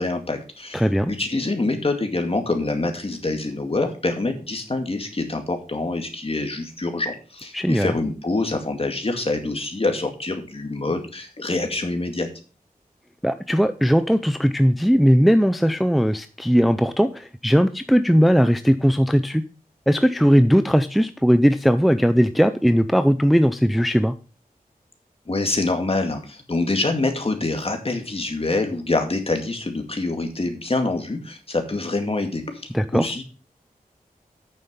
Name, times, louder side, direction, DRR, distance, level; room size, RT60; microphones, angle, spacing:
voice 1, 0.0-12.3 25.3-33.2, left 2 dB, 40° left, 5 dB, 2.2 m, -25 dB
voice 2, 0.7-1.1 7.5-7.9 13.2-19.4 19.9-24.1 32.7-33.1, equal, ahead, 11 dB, 0.5 m, -18 dB
9.1 x 6.7 x 5.4 m, 0.36 s
wide cardioid pair, 85°, 15 cm